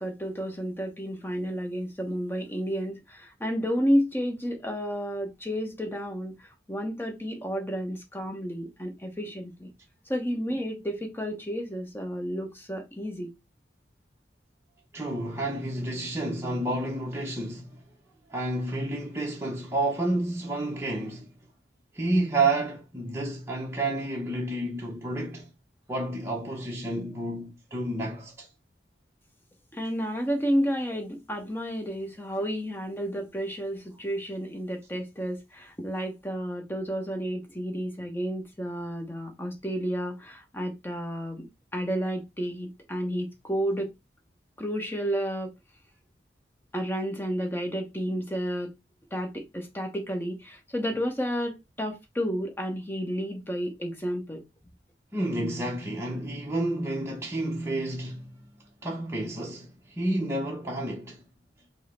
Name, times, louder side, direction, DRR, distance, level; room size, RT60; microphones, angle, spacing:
voice 1, 0.0-6.3 6.7-9.7 10.1-13.3 29.7-41.5 41.7-43.9 44.6-45.5 46.7-48.7 49.1-54.4, equal, 15° left, 0.9 m, -31 dB
voice 2, 14.9-17.8 18.3-21.4 21.9-25.5 25.9-28.5 55.1-58.5 58.8-61.3, right 2 dB, 15° right, 0.7 m, -30 dB
5.5 x 2.0 x 4.2 m
head